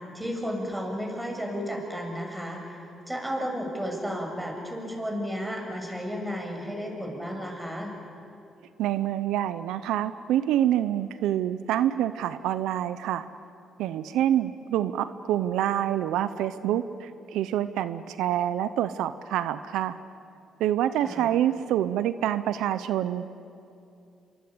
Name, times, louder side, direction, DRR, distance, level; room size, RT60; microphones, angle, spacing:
voice 1, 0.1-7.9 21.0-21.3, equal, 10° right, 1 dB, 7.0 m, -33 dB
voice 2, 8.8-13.3 13.8-20.0 20.6-23.3, right 11 dB, 90° right, 13 dB, 0.7 m, -26 dB
27.5 x 24.0 x 8.6 m, 2.7 s
cardioid pair, 90°, 0 cm